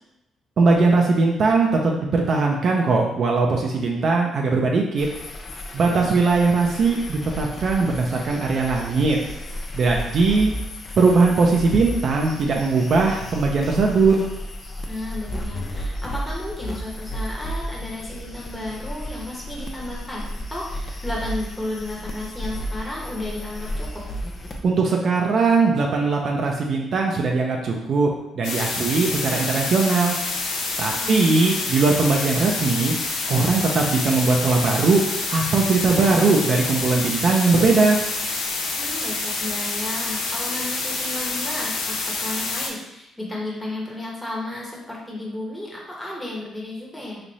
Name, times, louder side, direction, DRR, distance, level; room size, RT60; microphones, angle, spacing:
voice 1, 0.6-5.1 5.7-9.2 9.7-10.5 11.0-14.2 24.6-30.2 30.8-32.9 33.3-35.0 35.3-38.0, right 3 dB, 55° right, 0 dB, 0.5 m, -20 dB
sound 1, 5.0-24.6, equal, 35° left, 0.5 m, -33 dB
voice 2, 14.8-24.0 30.9-31.5 38.8-47.2, left 1 dB, 5° left, -4 dB, 1.0 m, -33 dB
sound 2, 28.4-42.7, left 3 dB, 90° left, 0.6 m, -27 dB
3.1 x 2.5 x 4.0 m, 0.88 s
cardioid pair, 100°, 0 cm